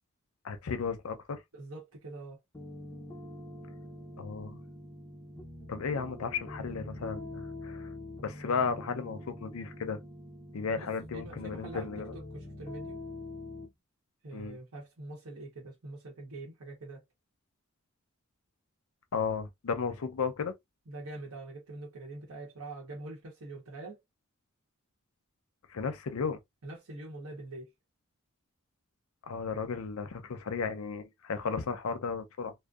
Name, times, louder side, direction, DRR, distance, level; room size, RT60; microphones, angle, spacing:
voice 1, 0.4-1.4 4.2-4.6 5.7-7.9 8.2-10.0 10.5-12.1 14.3-14.6 19.1-20.5 25.7-26.4 29.3-32.5, left 5 dB, 75° left, 0.5 m, -34 dB
voice 2, 1.5-2.4 10.7-11.9 12.3-13.0 14.2-17.0 20.9-24.0 26.6-27.7, right 2 dB, 80° right, 0.9 m, -44 dB
sound 1, 2.5-13.7, left 1 dB, 15° left, 0.6 m, -45 dB
2.6 x 2.0 x 2.3 m
head